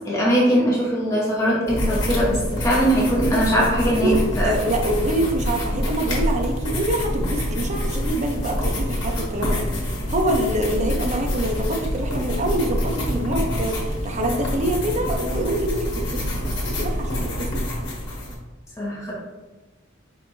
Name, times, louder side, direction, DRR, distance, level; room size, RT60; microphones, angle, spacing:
voice 1, 0.0-4.5 18.8-19.1, equal, 15° left, -6 dB, 0.9 m, -21 dB
sound 1, 1.7-18.3, equal, 65° left, 1.2 m, -26 dB
voice 2, 3.8-4.2 4.4-17.5, right 1 dB, 35° right, 2 dB, 0.6 m, -26 dB
4.6 x 3.4 x 2.6 m, 1.2 s
head